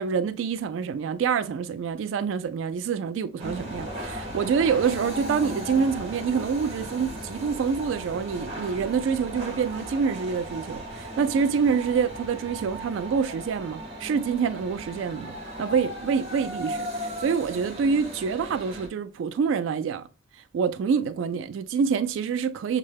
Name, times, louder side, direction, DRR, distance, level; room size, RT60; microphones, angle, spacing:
voice 1, 0.0-20.1 20.5-22.8, right 6 dB, 85° right, 0.3 m, -26 dB
sound 1, 3.4-18.9, equal, 30° right, 1.0 m, -37 dB
6.2 x 2.2 x 3.3 m
head